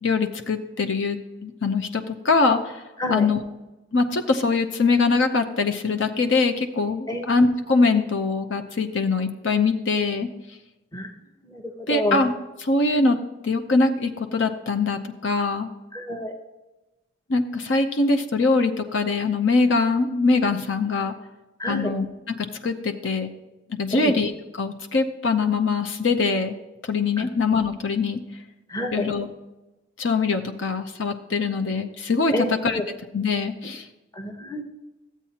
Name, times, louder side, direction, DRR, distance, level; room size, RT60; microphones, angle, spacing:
voice 1, 0.0-2.8 3.1-3.4 3.9-10.3 11.9-12.3 12.6-13.2 13.4-15.7 17.3-21.1 21.7-22.3 22.6-23.3 23.7-24.3 24.6-26.5 26.9-28.2 28.9-29.3 30.0-32.8 33.1-33.9, left 3 dB, 70° left, 6 dB, 0.7 m, -23 dB
voice 2, 11.4-12.2 15.9-16.3 21.6-21.9 23.9-24.1 27.2-27.3 28.7-29.1 32.3-32.8 34.1-34.6, left 1 dB, 20° left, 5 dB, 1.0 m, -28 dB
13.5 x 8.3 x 2.9 m, 1.1 s
head